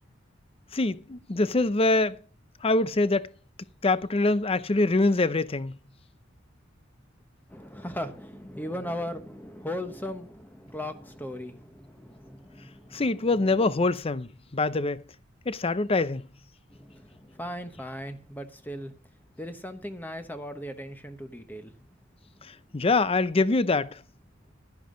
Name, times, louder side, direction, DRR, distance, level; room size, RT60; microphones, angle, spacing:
voice 1, 0.7-2.2 2.6-3.3 3.8-5.7 12.9-15.0 15.5-16.3 22.7-24.0, left 2 dB, 30° left, 0.6 m, -24 dB
voice 2, 7.5-13.7 16.7-18.9 19.4-21.7, left 1 dB, 10° left, 1.0 m, -38 dB
11.0 x 10.5 x 3.8 m
head